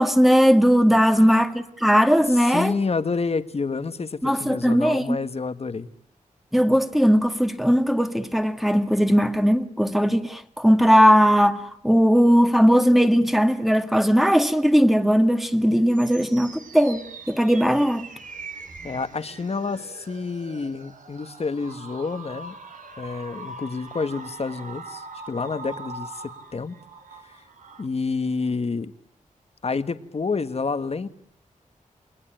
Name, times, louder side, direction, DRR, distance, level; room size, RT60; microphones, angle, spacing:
voice 1, 0.0-2.7 4.2-5.2 6.5-18.1, equal, ahead, 2.0 m, -18 dB
voice 2, 1.0-1.4 2.3-5.9 18.8-22.5 23.0-26.7 27.2-27.4 27.8-28.9 29.6-31.1, left 4 dB, 50° left, 1.6 m, -29 dB
sound 1, 15.5-27.9, right 3 dB, 70° right, 3.2 m, -42 dB
29.0 x 22.0 x 9.0 m
wide cardioid pair, 85°, 14 cm